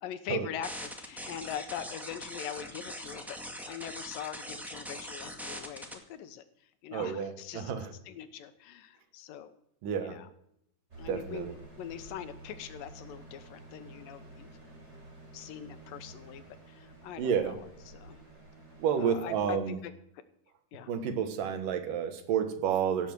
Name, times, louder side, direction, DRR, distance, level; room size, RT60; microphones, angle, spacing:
voice 1, 0.0-3.4 3.7-9.5 10.0-10.3 11.0-14.5 15.3-17.6 17.9-18.2 19.0-19.9 20.7-20.9, left 10 dB, 85° left, 11 dB, 2.7 m, -42 dB
sound 1, 0.6-5.9, equal, ahead, 0.9 m, -42 dB
voice 2, 6.9-7.9 9.8-10.2 11.1-11.5 17.2-17.6 18.8-19.8 20.9-23.1, right 7 dB, 75° right, 8 dB, 3.0 m, -30 dB
sound 2, 10.9-19.5, right 2 dB, 20° right, 3.7 m, -51 dB
17.0 x 7.2 x 7.8 m, 0.73 s
omnidirectional pair, 3.9 m